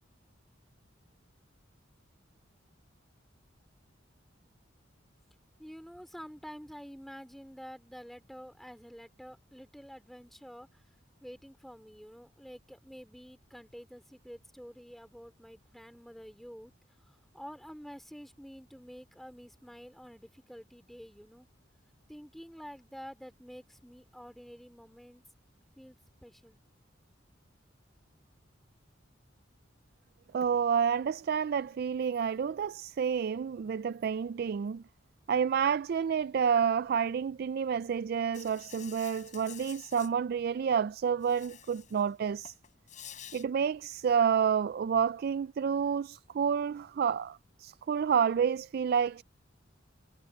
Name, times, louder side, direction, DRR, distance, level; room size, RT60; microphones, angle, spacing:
voice 1, 5.6-21.5 22.1-25.2 25.8-26.6, equal, ahead, 2.7 m, -49 dB
voice 2, 30.3-34.8 35.3-42.5 43.3-49.2, right 7 dB, 50° right, 0.3 m, -29 dB
Insect, 38.3-40.1 41.2-42.0 42.4-43.4, left 9 dB, 40° left, 5.0 m, -49 dB
head